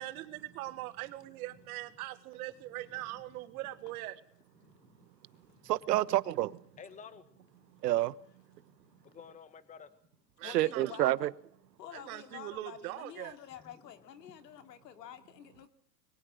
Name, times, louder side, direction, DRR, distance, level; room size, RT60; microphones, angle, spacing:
voice 1, 0.0-4.2 10.4-10.9 11.9-13.4, right 16 dB, 60° right, 1.7 m, -41 dB
voice 2, 4.6-5.7 6.8-7.8 8.5-9.9 13.6-13.9, left 6 dB, 15° left, 1.4 m, -54 dB
voice 3, 5.6-6.6 7.8-8.1 10.4-11.3, right 15 dB, 75° right, 1.2 m, -28 dB
voice 4, 10.4-11.3 11.8-15.7, left 10 dB, 80° left, 3.2 m, -49 dB
23.0 x 19.0 x 6.5 m
hypercardioid pair, 125°, 49 cm